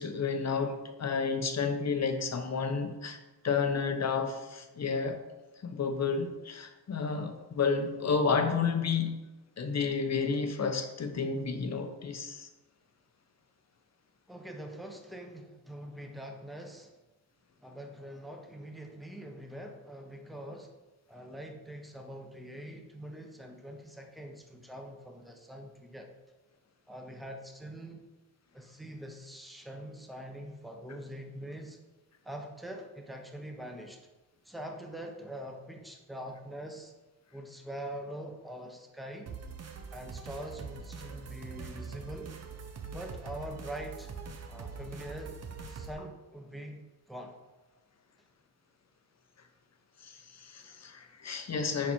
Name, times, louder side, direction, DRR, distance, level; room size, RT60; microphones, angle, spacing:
voice 1, 0.0-3.2 3.4-5.2 5.6-9.2 9.6-12.5 50.0-51.9, left 5 dB, 35° left, 7 dB, 0.8 m, -31 dB
voice 2, 14.3-16.9 17.6-20.7 21.1-26.1 26.9-28.1 28.5-31.8 32.2-34.0 34.4-36.9 37.3-39.3 39.9-42.3 42.8-44.1 44.5-45.4 45.7-47.3, right 1 dB, ahead, 3 dB, 0.8 m, -44 dB
sound 1, 39.3-45.9, right 5 dB, 35° right, 0.7 m, -43 dB
4.9 x 4.4 x 4.4 m, 1.1 s
cardioid pair, 75°, 44 cm